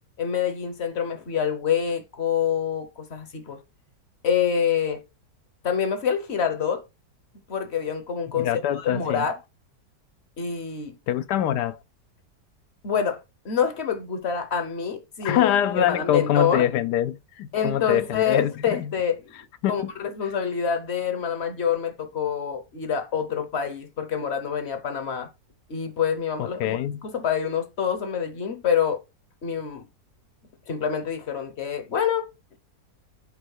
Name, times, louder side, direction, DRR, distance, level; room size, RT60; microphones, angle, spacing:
voice 1, 0.2-3.6 4.2-5.0 5.6-6.8 7.5-8.5 8.7-9.4 10.4-11.0 12.8-16.7 17.5-19.3 19.7-25.3 25.7-29.0 29.4-29.8 30.7-32.3, left 7 dB, 45° left, 1.0 m, -26 dB
voice 2, 8.4-9.3 11.1-11.8 15.2-18.5 18.8-18.9 19.6-19.9 26.6-27.0, left 11 dB, 75° left, 1.2 m, -24 dB
5.4 x 4.2 x 4.7 m
omnidirectional pair, 1.8 m